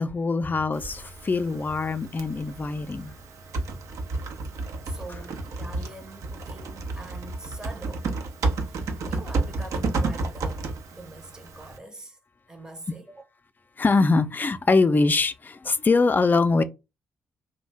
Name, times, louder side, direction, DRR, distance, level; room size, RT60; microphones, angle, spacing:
voice 1, 0.0-3.1 13.8-16.6, left 3 dB, 30° left, 0.4 m, -23 dB
Typing, 0.7-11.8, right 3 dB, 65° right, 0.5 m, -32 dB
voice 2, 4.8-8.1 8.7-12.2 12.5-13.2, right 2 dB, 10° right, 0.7 m, -44 dB
2.5 x 2.2 x 3.2 m
hypercardioid pair, 40°, 6 cm